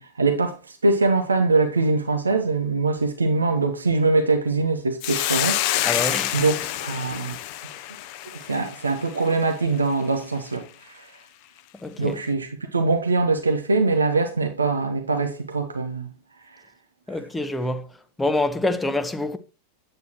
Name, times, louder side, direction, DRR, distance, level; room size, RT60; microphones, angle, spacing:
voice 1, 0.0-5.9 6.3-7.4 8.5-11.1 12.0-16.1, right 3 dB, 75° right, 1.0 m, -23 dB
Hiss, 5.0-9.5, left 14 dB, 45° left, 0.6 m, -27 dB
voice 2, 5.8-6.4 11.8-12.2 17.1-17.9 18.2-19.4, left 2 dB, 10° left, 0.8 m, -26 dB
8.8 x 8.2 x 3.0 m
figure-of-eight pair, 90°, 0 cm